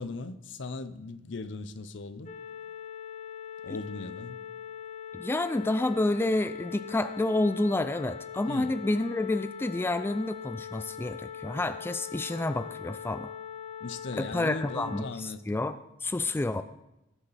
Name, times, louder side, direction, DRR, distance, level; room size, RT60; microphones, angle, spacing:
voice 1, 0.0-2.3 3.6-4.4 8.5-8.7 13.8-15.6, left 3 dB, 70° left, 0.7 m, -38 dB
sound 1, 2.3-15.0, left 8 dB, 40° left, 1.0 m, -41 dB
voice 2, 5.1-13.3 14.2-16.6, left 2 dB, 10° left, 0.3 m, -29 dB
17.0 x 6.8 x 4.2 m
head